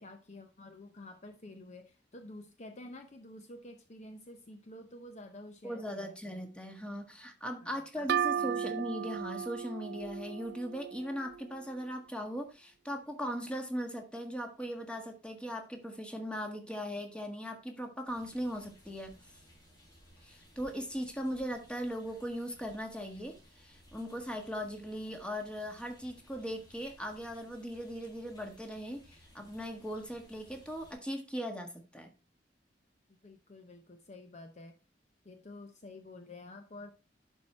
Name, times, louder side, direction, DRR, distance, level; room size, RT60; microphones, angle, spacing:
voice 1, 0.0-6.4 7.6-7.7 7.9-9.2 33.2-34.8 35.2-36.9, left 2 dB, 40° left, 6 dB, 0.8 m, -50 dB
voice 2, 5.6-19.2 20.2-32.1, equal, 5° left, 4 dB, 1.5 m, -39 dB
sound 1, 8.1-11.6, right 8 dB, 65° right, 0.3 m, -35 dB
sound 2, 18.1-31.0, equal, 25° left, 5.0 m, -60 dB
11.0 x 4.6 x 4.3 m, 0.31 s
head